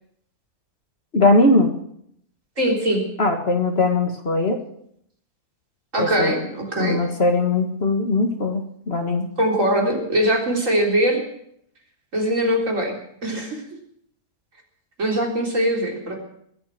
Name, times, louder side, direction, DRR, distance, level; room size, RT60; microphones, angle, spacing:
voice 1, 1.1-1.7 3.2-4.6 6.0-6.5 6.8-9.3, left 2 dB, 40° left, 4 dB, 1.9 m, -20 dB
voice 2, 2.6-3.1 5.9-7.0 9.4-11.2 12.1-12.9 13.2-13.6 15.0-16.2, equal, 55° right, 0 dB, 4.0 m, -21 dB
21.5 x 8.7 x 7.6 m, 0.71 s
omnidirectional pair, 1.6 m